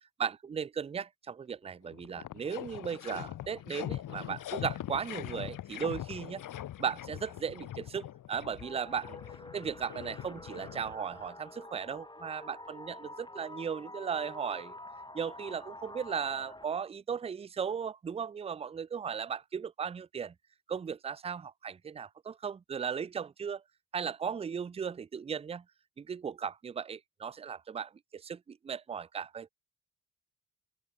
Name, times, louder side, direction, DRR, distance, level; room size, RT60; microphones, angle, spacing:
voice 1, 0.2-6.4 6.8-9.2 9.5-14.7 15.1-20.3 20.7-23.6 23.9-25.6 26.0-29.5, right 7 dB, 15° right, 0.5 m, -36 dB
sound 1, 1.5-1.6 1.9-11.3, left 12 dB, 60° left, 3.4 m, -42 dB
sound 2, 8.6-16.6, left 2 dB, 10° left, 6.0 m, -48 dB
open air
figure-of-eight pair, 40°, 36 cm